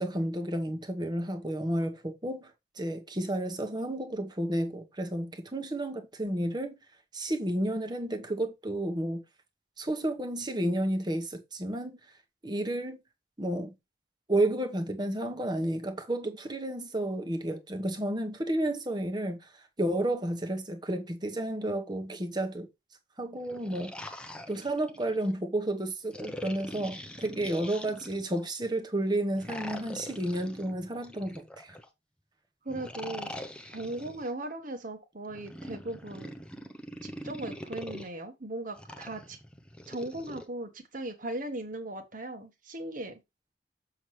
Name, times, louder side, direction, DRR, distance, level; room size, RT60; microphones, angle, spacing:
voice 1, 0.0-2.5 2.8-6.7 7.1-9.2 9.8-12.0 12.4-13.0 13.4-13.7 14.3-19.4 19.8-22.7 23.2-23.9 24.5-31.8, right 1 dB, 25° right, 1.1 m, -31 dB
sound 1, 23.4-25.3 26.1-28.5 29.3-31.9 32.7-34.3 35.3-38.1 38.8-40.4, left 1 dB, 5° left, 0.8 m, -43 dB
voice 2, 32.6-33.3 33.7-36.3 37.0-39.4 39.9-43.2, right 1 dB, 45° right, 1.4 m, -38 dB
7.1 x 6.0 x 3.2 m
head